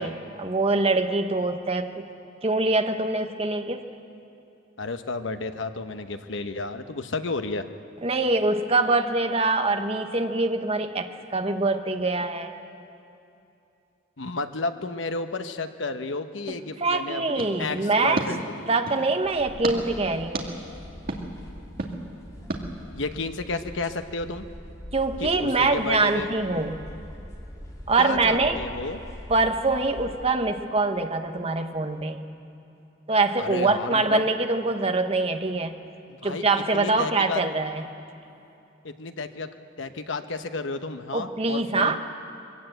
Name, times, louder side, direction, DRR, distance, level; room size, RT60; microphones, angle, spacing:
voice 1, 0.0-2.1 2.4-3.8 8.0-12.5 16.8-18.2 18.7-20.5 24.9-26.8 27.9-28.6 29.3-32.2 33.1-35.7 36.2-37.8 41.1-42.0, right 3 dB, 30° right, 7 dB, 1.1 m, -24 dB
voice 2, 4.8-7.6 14.2-18.4 22.9-24.5 25.2-26.3 28.0-29.0 33.4-34.2 36.2-37.4 38.8-39.5 39.8-42.0, left 3 dB, 70° left, 9 dB, 1.0 m, -32 dB
sound 1, 17.4-19.1 19.6-19.8 20.3-20.5 21.1-21.2 21.8-21.9 22.5-22.6, right 2 dB, 50° right, 1.9 m, -32 dB
sound 2, 19.2-30.2, equal, 15° left, 2.6 m, -43 dB
22.5 x 17.5 x 7.9 m, 2.7 s
head